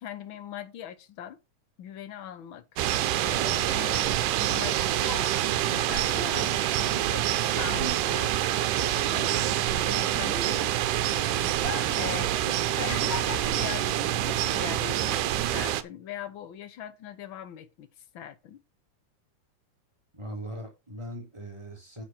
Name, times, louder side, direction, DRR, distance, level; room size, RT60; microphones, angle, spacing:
voice 1, 0.0-1.4 1.8-2.6 3.2-8.3 9.1-17.9 18.1-18.6, left 10 dB, 65° left, 1.2 m, -41 dB
sound 1, 2.8-15.8, right 12 dB, 75° right, 2.2 m, -26 dB
sound 2, 3.8-8.6 8.9-11.0 11.5-12.1 12.4-13.9 14.6-14.8, left 3 dB, 85° left, 0.5 m, -40 dB
voice 2, 20.1-22.0, equal, 10° right, 3.7 m, -39 dB
9.0 x 7.9 x 4.5 m
omnidirectional pair, 3.7 m